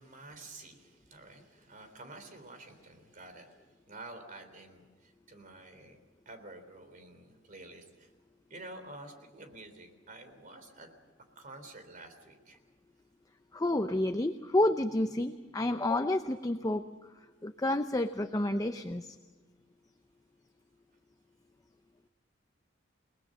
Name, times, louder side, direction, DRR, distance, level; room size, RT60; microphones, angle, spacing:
voice 1, 0.0-3.6 3.9-6.0 6.3-8.1 8.5-10.9 11.4-12.6, right 2 dB, 45° right, 7 dB, 3.6 m, -50 dB
voice 2, 13.5-16.9 17.4-19.2, left 1 dB, 20° left, 8 dB, 0.6 m, -30 dB
29.5 x 19.5 x 6.5 m, 1.4 s
head